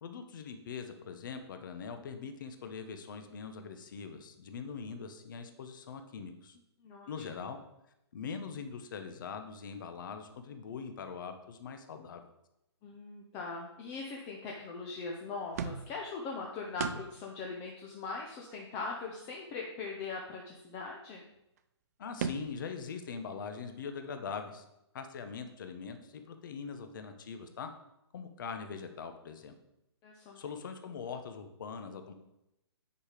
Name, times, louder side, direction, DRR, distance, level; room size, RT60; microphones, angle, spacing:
voice 1, 0.0-6.6 7.1-7.6 8.1-12.2 22.0-24.6 24.9-27.7 28.1-29.5 30.4-32.1, left 6 dB, 45° left, 7 dB, 1.0 m, -42 dB
voice 2, 6.8-7.4 12.8-21.3 30.0-30.4, left 4 dB, 20° left, -1 dB, 0.8 m, -41 dB
sound 1, 15.5-16.1 16.8-17.3 17.6-17.7 17.9-18.0 18.4-19.4 21.3-21.4 21.6-21.7 22.2-22.7, right 6 dB, 35° right, 0.5 m, -38 dB
9.5 x 5.1 x 5.0 m, 0.87 s
hypercardioid pair, 160°, 15 cm